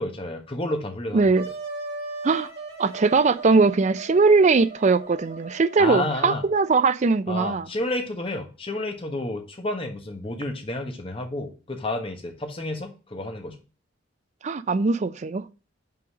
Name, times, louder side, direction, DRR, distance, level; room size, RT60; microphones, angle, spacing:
voice 1, 0.0-1.3 5.8-6.4 7.3-13.6, left 1 dB, 30° left, 1.1 m, -30 dB
voice 2, 1.1-1.4 2.2-2.5 2.8-7.7 14.4-15.4, right 4 dB, 35° right, 0.4 m, -20 dB
Wind instrument woodwind instrument, 1.3-6.8, right 3 dB, 55° right, 2.0 m, -38 dB
5.6 x 3.9 x 5.0 m
head